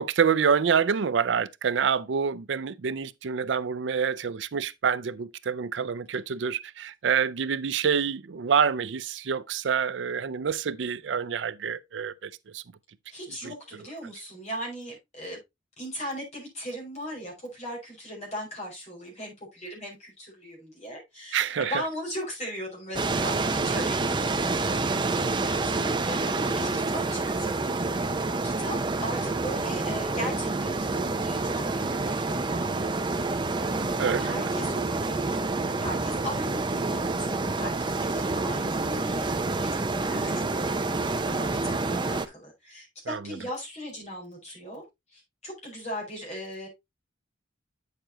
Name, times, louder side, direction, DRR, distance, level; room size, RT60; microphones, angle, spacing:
voice 1, 0.0-12.6 13.4-13.5 21.3-21.8 34.0-34.4 43.1-43.2, right 6 dB, 65° right, 0.4 m, -27 dB
voice 2, 13.1-15.4 15.8-28.8 29.0-35.2 35.8-44.8 45.1-46.7, equal, 35° left, 5.7 m, -38 dB
sound 1, 22.9-42.3, right 3 dB, 25° right, 0.6 m, -28 dB
9.1 x 6.6 x 2.8 m
head